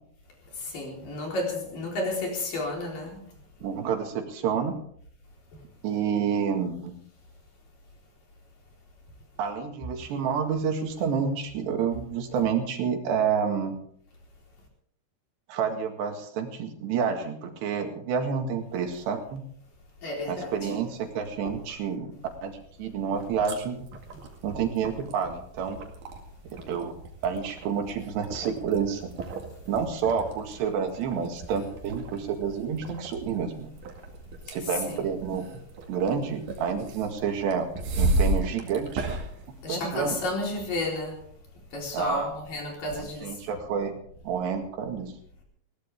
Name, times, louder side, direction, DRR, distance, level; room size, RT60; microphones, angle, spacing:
voice 1, 0.7-3.2 20.0-20.7 21.5-21.6 34.9-35.1 39.6-41.2 41.7-43.3, left 2 dB, 55° left, 0 dB, 5.5 m, -31 dB
voice 2, 3.6-4.7 5.8-7.0 9.4-13.8 15.5-19.4 20.3-22.1 22.4-23.9 24.4-25.8 26.7-26.9 27.2-29.1 29.7-33.7 34.5-35.5 35.9-37.7 38.0-39.1 39.7-40.2 41.9-42.3 42.9-43.9 44.2-45.1, right 6 dB, 80° right, 4 dB, 4.1 m, -29 dB
sound 1, 23.1-40.3, right 2 dB, 55° right, 3.4 m, -35 dB
20.0 x 17.5 x 3.6 m, 0.62 s
omnidirectional pair, 4.9 m